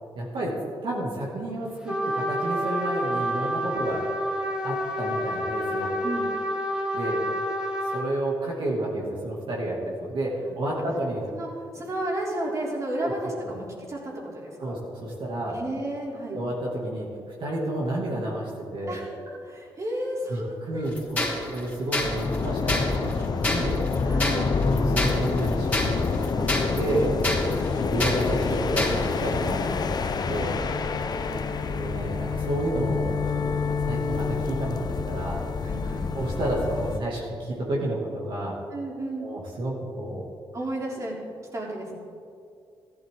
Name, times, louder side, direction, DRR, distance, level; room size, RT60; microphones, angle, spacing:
voice 1, 0.2-0.6 0.8-4.0 4.6-6.1 6.9-7.2 7.9-11.2 13.0-13.1 13.4-13.5 14.6-15.6 16.3-17.1 17.4-19.0 20.3-23.8 24.2-26.5 26.7-27.1 27.9-30.6 31.3-31.4 31.7-33.1 33.8-35.4 36.1-38.6 39.2-40.2, right 1 dB, 65° right, -4 dB, 2.6 m, -30 dB
Trumpet, 1.9-8.1, equal, 10° right, 2.3 m, -28 dB
voice 2, 10.4-10.8 11.3-11.5 11.7-14.8 15.5-16.4 18.9-21.4 22.3-23.0 24.0-24.6 26.5-27.0 27.5-27.9 30.9-31.9 35.6-36.1 38.7-39.3 40.5-41.2 41.5-42.0, right 1 dB, 35° right, -3 dB, 3.5 m, -34 dB
sound 1, 20.9-29.3, left 2 dB, 15° left, 3.5 m, -29 dB
sound 2, 22.0-37.0, left 4 dB, 50° left, 0.7 m, -27 dB
14.0 x 12.0 x 3.9 m, 2.4 s
cardioid pair, 80°, 9 cm